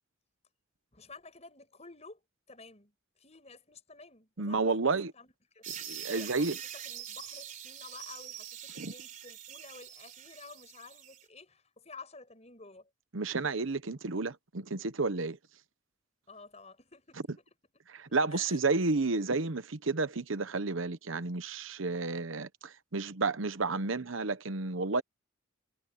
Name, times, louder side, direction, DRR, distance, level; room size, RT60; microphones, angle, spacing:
voice 1, 0.9-2.2 2.5-5.6 6.0-6.5 6.7-12.9 16.3-17.4 18.3-18.6, left 4 dB, 35° left, 6.2 m, -52 dB
voice 2, 4.4-5.1 5.9-6.6 8.8-8.9 13.1-15.4 17.9-25.0, right 3 dB, 85° right, 1.0 m, -31 dB
sound 1, 5.6-11.2, right 9 dB, 40° right, 3.7 m, -44 dB
head